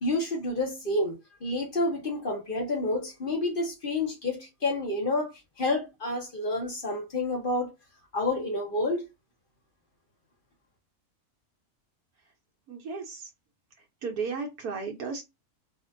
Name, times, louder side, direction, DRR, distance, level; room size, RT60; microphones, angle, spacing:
voice 1, 0.0-5.3 5.6-7.7 8.1-9.1, left 2 dB, 40° left, 1.1 m, -29 dB
voice 2, 12.7-13.3 14.0-15.2, right 5 dB, 90° right, 1.3 m, -34 dB
4.3 x 2.5 x 2.5 m
omnidirectional pair, 1.5 m